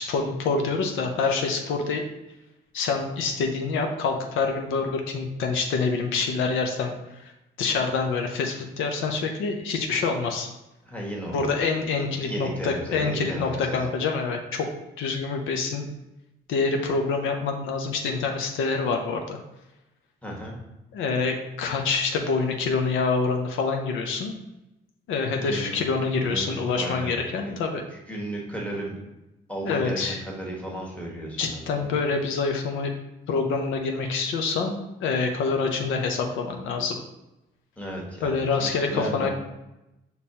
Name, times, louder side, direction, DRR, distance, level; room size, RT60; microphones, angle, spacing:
voice 1, 0.0-2.0 2.7-6.9 7.6-10.5 11.3-14.7 15.0-15.9 16.5-19.4 20.9-24.3 25.1-27.8 29.7-30.2 31.4-32.9 33.3-37.0 38.2-39.3, left 4 dB, 80° left, 3 dB, 0.5 m, -26 dB
voice 2, 10.8-11.6 11.9-13.9 20.2-20.6 25.4-25.8 26.1-27.1 27.4-29.0 29.5-31.9 37.8-39.3, right 1 dB, 5° left, -3 dB, 1.3 m, -35 dB
5.3 x 2.9 x 2.7 m, 0.94 s
cardioid pair, 90°, 20 cm